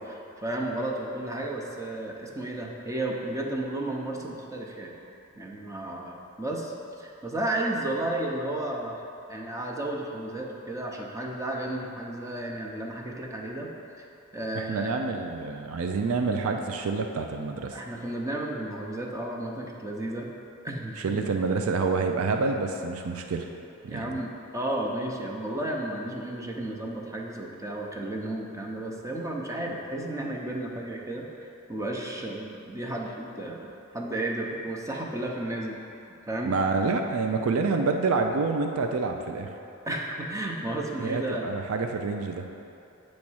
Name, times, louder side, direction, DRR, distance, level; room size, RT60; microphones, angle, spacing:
voice 1, 0.1-4.9 5.4-8.9 9.3-13.7 14.0-14.1 14.3-15.0 17.7-20.3 20.6-21.3 23.9-35.8 36.3-36.5 39.9-41.5, right 1 dB, 15° right, -1 dB, 0.6 m, -33 dB
voice 2, 14.6-17.7 21.0-23.4 23.8-24.2 36.5-39.5 41.0-42.5, right 4 dB, 75° right, 4 dB, 0.4 m, -27 dB
8.5 x 3.1 x 6.2 m, 2.8 s
head